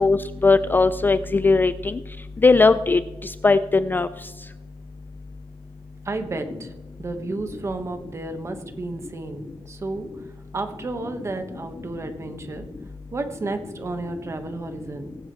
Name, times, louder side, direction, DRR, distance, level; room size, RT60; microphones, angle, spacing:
voice 1, 0.0-1.9 2.4-3.0 3.4-4.1, left 3 dB, 20° left, 13 dB, 0.3 m, -18 dB
voice 2, 6.0-6.7 7.0-10.1 10.5-12.7 13.1-15.1, right 2 dB, 30° right, 6 dB, 1.4 m, -32 dB
21.5 x 7.7 x 3.2 m, 1.1 s
wide cardioid pair, 155°, 10 cm